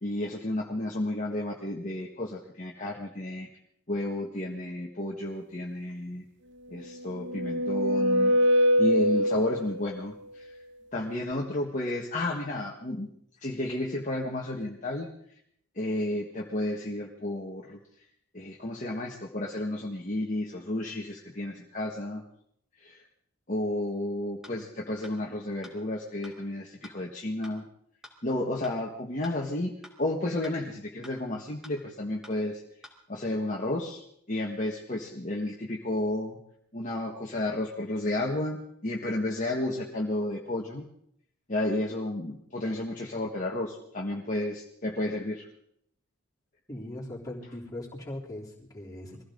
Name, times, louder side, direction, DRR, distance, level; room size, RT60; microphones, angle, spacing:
voice 1, 0.0-3.5 3.9-6.2 6.7-10.5 10.9-13.1 13.4-15.1 15.7-17.8 18.3-22.2 22.8-23.0 23.5-27.6 28.2-29.7 30.0-32.6 33.1-36.4 36.7-40.9 41.5-45.5, left 1 dB, 35° left, -1 dB, 1.5 m, -32 dB
sound 1, 6.8-9.9, equal, 55° right, 0.8 m, -24 dB
sound 2, 24.4-24.5 25.0-25.1 25.6-25.7 26.2-26.3 26.8-26.9 27.4-27.5 28.0-28.1 28.6-28.7 29.2-29.3 29.8-29.9 30.4-30.5 31.0-31.1 31.6-31.7 32.2-32.3 32.8-32.9, left 1 dB, ahead, 2.4 m, -48 dB
voice 2, 46.7-49.2, left 1 dB, 15° left, -5 dB, 3.6 m, -40 dB
23.0 x 15.5 x 3.9 m, 0.70 s
head